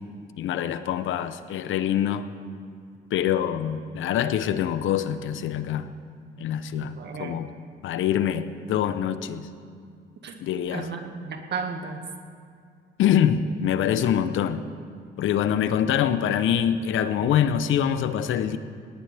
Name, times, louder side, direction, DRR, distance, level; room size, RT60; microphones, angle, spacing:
voice 1, 0.4-2.3 3.1-5.9 6.4-7.5 7.8-9.5 10.4-10.9 13.0-14.6 15.2-18.6, left 9 dB, 80° left, 11 dB, 0.8 m, -25 dB
voice 2, 6.8-7.4 10.2-10.4 10.7-12.1, right 5 dB, 60° right, 4 dB, 1.8 m, -34 dB
19.0 x 18.0 x 3.5 m, 2.3 s
cardioid pair, 90°, 20 cm